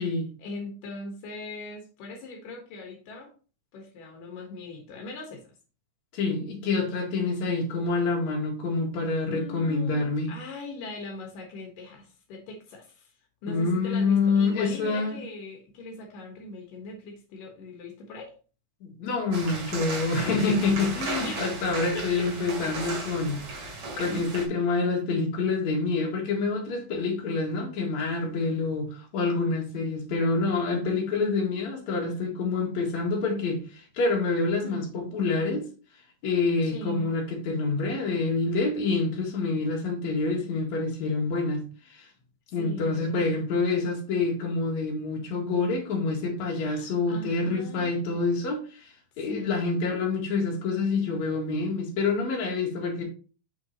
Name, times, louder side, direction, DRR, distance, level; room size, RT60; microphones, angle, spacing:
voice 1, 0.4-3.3 3.7-5.5 9.3-13.1 13.4-18.3 21.2-21.5 21.9-22.3 26.7-27.1 34.6-34.9 36.6-37.1 42.5-43.3 46.5-48.0 49.3-49.7, left 2 dB, 80° left, 3.0 m, -40 dB
voice 2, 6.1-10.3 13.5-15.2 18.8-23.4 24.0-35.7 36.2-42.1 42.5-53.0, left 3 dB, 60° left, 3.1 m, -27 dB
sound 1, 19.3-24.5, right 2 dB, 60° right, 3.4 m, -35 dB
7.5 x 5.9 x 2.9 m
omnidirectional pair, 3.7 m